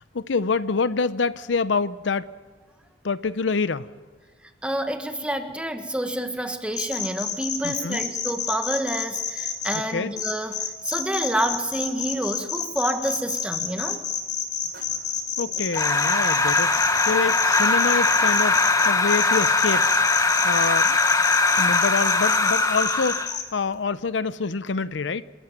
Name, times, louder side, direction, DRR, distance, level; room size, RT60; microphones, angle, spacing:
voice 1, 0.0-2.3 3.0-3.9 7.6-8.0 9.9-10.1 15.4-16.8 17.1-19.9 20.4-21.0 21.5-25.2, left 4 dB, 80° left, 0.7 m, -26 dB
voice 2, 4.6-14.0, right 1 dB, 5° right, 1.6 m, -28 dB
sound 1, 6.7-9.8 10.2-23.4, left 8 dB, 60° left, 3.9 m, -29 dB
sound 2, 10.5-10.8 11.3-12.5 13.0-14.0 14.7-15.9 16.4-17.6 18.1-19.3 19.8-21.0, right 2 dB, 60° right, 4.3 m, -47 dB
sound 3, 15.7-23.4, left 3 dB, 20° left, 1.0 m, -21 dB
27.0 x 14.0 x 9.0 m
head